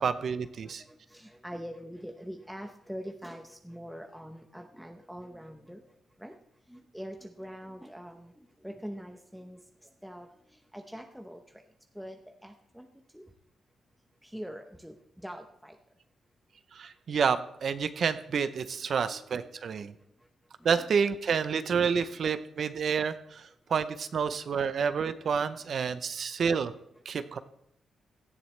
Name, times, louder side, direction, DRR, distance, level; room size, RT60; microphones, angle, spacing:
voice 1, 0.0-0.8 16.7-19.9 20.6-26.7 27.1-27.4, right 6 dB, 55° right, 11 dB, 0.6 m, -29 dB
voice 2, 0.7-5.8 6.2-6.4 6.7-8.3 8.6-10.3 10.7-11.4 11.9-12.9 13.1-13.2 14.2-15.8 19.0-19.8 20.7-20.9, equal, ahead, 3 dB, 0.8 m, -44 dB
17.0 x 12.5 x 3.3 m, 0.75 s
wide cardioid pair, 145°, 0 cm